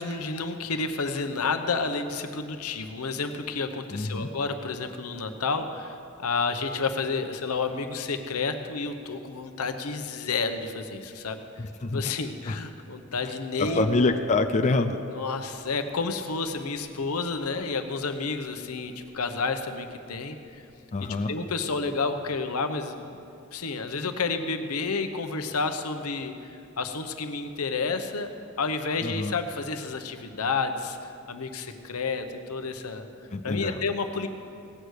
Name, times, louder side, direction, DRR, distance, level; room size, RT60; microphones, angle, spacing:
voice 1, 0.0-11.4 11.8-14.1 15.1-20.6 21.3-23.0 23.5-28.3 28.6-33.1 33.4-34.3, left 4 dB, 90° left, 7 dB, 0.9 m, -30 dB
voice 2, 3.9-4.3 11.6-12.0 12.5-12.6 13.2-13.3 13.6-15.0 20.9-21.3 29.0-29.3 33.3-33.8, left 3 dB, 30° left, 5 dB, 0.5 m, -26 dB
sound 1, 13.7-21.2 21.5-22.0, left 1 dB, 60° right, 1.0 m, -45 dB
17.5 x 6.4 x 8.2 m, 2.6 s
head